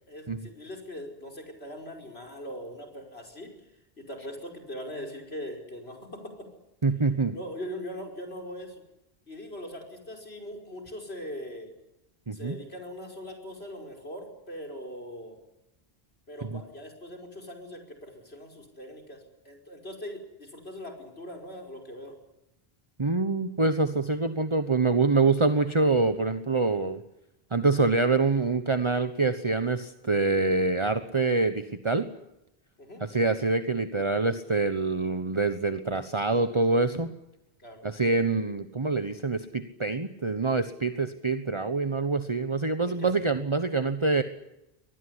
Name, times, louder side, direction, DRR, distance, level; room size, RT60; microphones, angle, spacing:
voice 1, 0.1-3.7 4.0-6.5 7.3-8.8 9.3-11.7 12.3-15.5 16.3-22.2 32.8-33.0 37.6-37.8 42.8-43.1, equal, 85° left, 3 dB, 5.6 m, -41 dB
voice 2, 6.8-7.4 12.3-12.6 16.5-16.6 23.0-27.0 27.5-32.1 33.0-37.1 37.8-44.2, right 3 dB, 30° right, 10 dB, 1.2 m, -25 dB
25.0 x 19.5 x 10.0 m, 0.89 s
omnidirectional pair, 1.0 m